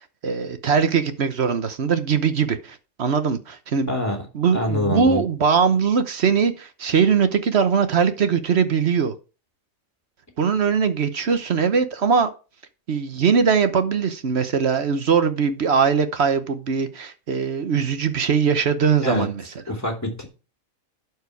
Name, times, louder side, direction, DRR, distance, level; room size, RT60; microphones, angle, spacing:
voice 1, 0.0-3.9 4.3-9.1 10.4-12.3 12.9-19.4, right 6 dB, 55° right, 1.1 m, -21 dB
voice 2, 3.9-4.3 4.5-5.3 19.0-19.3 19.7-20.3, left 1 dB, 10° left, 2.6 m, -25 dB
11.5 x 4.8 x 4.6 m
omnidirectional pair, 1.4 m